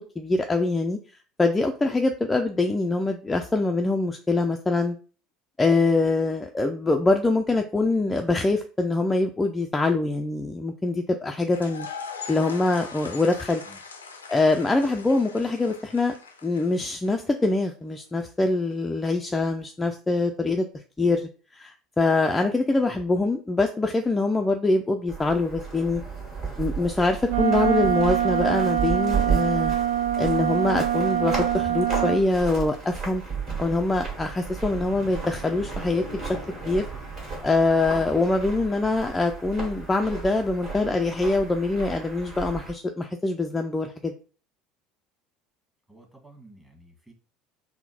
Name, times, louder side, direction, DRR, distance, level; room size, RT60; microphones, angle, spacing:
voice 1, 0.2-1.0 1.4-5.0 5.6-11.9 12.3-13.6 14.3-16.1 16.4-20.7 21.0-26.0 26.6-29.8 30.2-33.2 33.6-36.4 36.6-36.8 37.4-44.1, left 3 dB, 15° left, 4 dB, 0.3 m, -24 dB
sound 1, 11.4-17.4, left 5 dB, 80° left, 0.4 m, -41 dB
sound 2, 25.1-42.7, right 5 dB, 45° right, 1.8 m, -34 dB
Wind instrument woodwind instrument, 27.3-32.2, right 11 dB, 75° right, 0.7 m, -24 dB
voice 2, 45.9-47.1, right 1 dB, 10° right, 1 dB, 1.3 m, -51 dB
3.7 x 2.1 x 4.0 m, 0.39 s
figure-of-eight pair, 65°, 0 cm